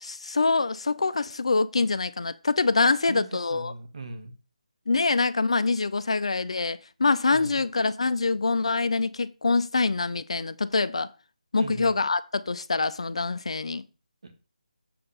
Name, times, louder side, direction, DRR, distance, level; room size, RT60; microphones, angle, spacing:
voice 1, 0.0-3.7 4.9-11.1 11.5-13.8, left 3 dB, 50° left, 0.5 m, -25 dB
voice 2, 3.5-4.3 7.3-7.6 11.6-11.9 14.2-14.3, right 2 dB, 50° right, 1.8 m, -39 dB
7.4 x 4.3 x 5.5 m
figure-of-eight pair, 155°, 4 cm